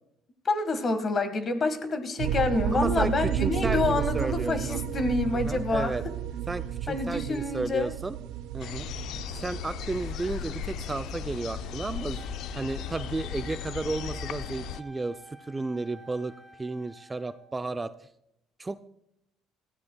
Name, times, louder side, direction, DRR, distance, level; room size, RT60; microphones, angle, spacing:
voice 1, 0.4-5.9 6.9-7.9, left 3 dB, 40° left, 9 dB, 1.6 m, -27 dB
sound 1, 2.2-14.8, right 11 dB, 80° right, 0.6 m, -34 dB
voice 2, 2.7-4.8 5.3-6.0 6.5-8.2 8.5-8.9 9.3-12.2 12.5-16.3 16.6-18.1 18.6-18.8, right 3 dB, 20° right, 12 dB, 0.4 m, -33 dB
sound 2, 8.6-14.8, left 11 dB, 70° left, 0.4 m, -37 dB
Wind instrument woodwind instrument, 12.1-17.6, right 1 dB, ahead, 2.9 m, -51 dB
19.0 x 14.0 x 2.3 m, 0.79 s
supercardioid pair, 75°, 0 cm